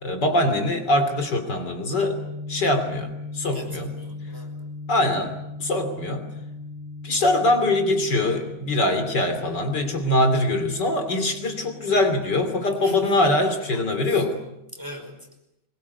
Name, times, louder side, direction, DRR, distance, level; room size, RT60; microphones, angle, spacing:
voice 1, 0.0-2.2 2.5-3.9 4.9-5.3 5.6-6.2 7.0-14.4, left 1 dB, 65° left, 8 dB, 3.5 m, -23 dB
sound 1, 1.9-14.2, left 3 dB, 35° right, 6.1 m, -39 dB
voice 2, 3.5-4.7 12.8-14.2 14.7-15.3, equal, 10° right, 4 dB, 5.1 m, -41 dB
23.5 x 22.0 x 9.6 m, 0.85 s
omnidirectional pair, 2.1 m